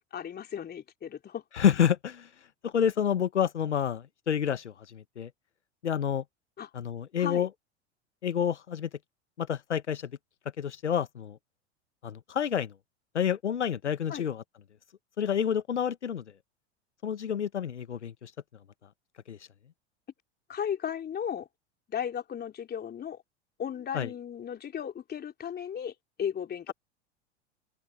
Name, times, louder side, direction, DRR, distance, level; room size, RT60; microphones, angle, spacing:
voice 1, 0.1-1.4 6.6-6.7 7.2-7.5 14.1-14.3 20.5-21.5 21.9-23.2 23.6-26.7, left 8 dB, 30° left, 3.5 m, -35 dB
voice 2, 1.5-2.3 2.6-5.3 5.8-6.2 6.7-7.5 8.2-8.9 9.4-10.1 10.6-11.4 12.0-12.7 13.1-14.4 15.2-16.2 17.0-18.3 19.3-19.4 23.9-24.1, left 8 dB, 85° left, 1.2 m, -28 dB
open air
hypercardioid pair, 85°, 34 cm